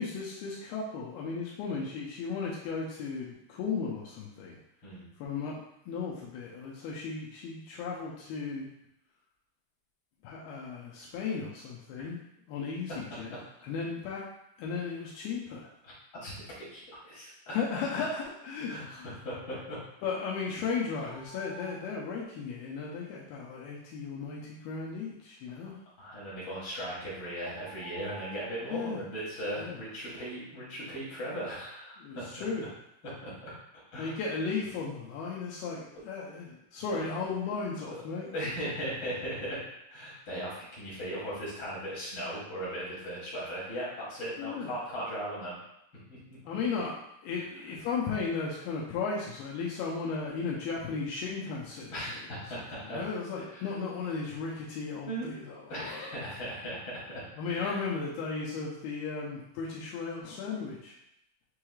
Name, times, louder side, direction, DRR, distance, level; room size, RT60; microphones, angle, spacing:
voice 1, 0.0-4.6 5.2-5.6 5.9-8.7 10.2-12.2 12.5-14.2 14.6-15.7 17.5-18.7 19.0-19.1 20.0-25.8 28.6-29.0 29.6-29.8 32.0-32.7 34.0-38.3 44.4-44.7 46.4-47.0 47.2-52.3 52.9-56.2 57.4-60.9, left 5 dB, 85° left, -5 dB, 2.1 m, -35 dB
voice 2, 16.7-17.6 18.7-19.0 19.2-19.8 25.6-25.7 26.0-32.2 33.0-33.5 33.9-34.1 36.9-37.1 38.3-39.6 39.9-45.6 46.1-46.2 46.5-46.6 51.9-53.0 53.5-53.6 55.0-55.3 55.7-57.2 57.6-57.7, equal, 60° left, -8 dB, 1.3 m, -38 dB
sound 1, 21.1-22.0 26.6-26.7 27.4-28.7, right 7 dB, 80° right, 2.7 m, -50 dB
6.7 x 3.1 x 2.4 m, 0.79 s
omnidirectional pair, 5.2 m